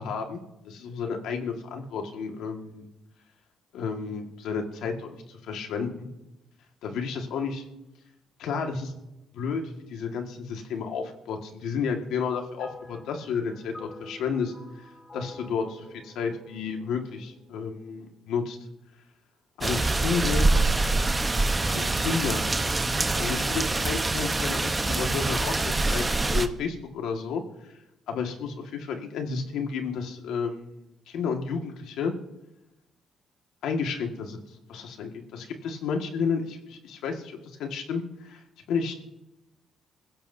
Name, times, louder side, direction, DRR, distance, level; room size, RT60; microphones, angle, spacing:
voice 1, 0.0-2.9 3.7-6.1 6.8-7.6 8.4-8.9 9.3-9.6 9.9-14.5 15.1-15.6 16.0-18.6 19.6-20.5 21.6-22.4 23.2-27.7 28.1-32.1 33.6-34.4 34.7-38.4 38.7-38.9, left 5 dB, 85° left, 3 dB, 1.8 m, -31 dB
sound 1, 12.6-18.1, left 1 dB, 30° left, 5.8 m, -48 dB
sound 2, 19.6-26.5, right 2 dB, 20° right, 0.9 m, -25 dB
26.0 x 15.5 x 2.7 m, 0.97 s
cardioid pair, 90°, 0 cm